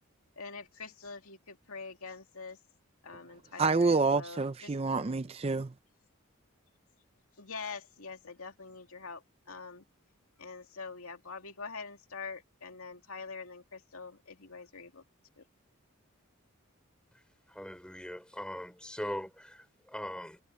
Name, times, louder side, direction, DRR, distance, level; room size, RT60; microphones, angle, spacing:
voice 1, 0.4-2.6 3.0-4.7 7.4-9.2 9.5-9.8 10.4-15.0 15.4-15.5, left 4 dB, 75° left, 2.5 m, -44 dB
voice 2, 3.6-5.7, right 3 dB, 25° right, 0.4 m, -28 dB
voice 3, 17.5-20.4, equal, 5° left, 5.3 m, -41 dB
head